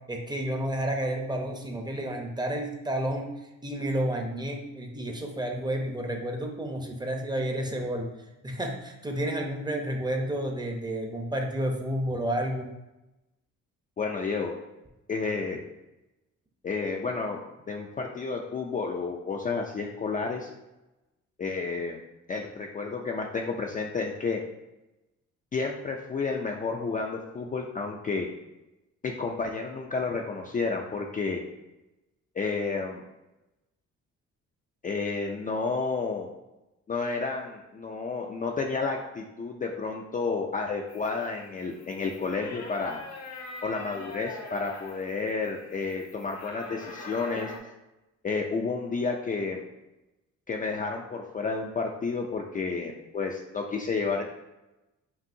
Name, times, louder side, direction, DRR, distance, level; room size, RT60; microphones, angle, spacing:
voice 1, 0.1-8.1 8.4-12.7, right 1 dB, 15° right, 2 dB, 0.7 m, -31 dB
voice 2, 14.0-14.5 15.1-15.6 16.6-17.4 17.7-20.5 21.4-22.0 22.3-24.4 25.5-28.3 29.0-31.4 32.4-33.0 34.8-36.3 36.9-43.0 43.6-47.5 48.2-49.6 50.5-54.2, left 4 dB, 25° left, 1 dB, 0.4 m, -31 dB
sound 1, 40.9-47.6, left 3 dB, 55° left, 0.8 m, -44 dB
5.4 x 2.6 x 2.6 m, 0.98 s
cardioid pair, 90°, 30 cm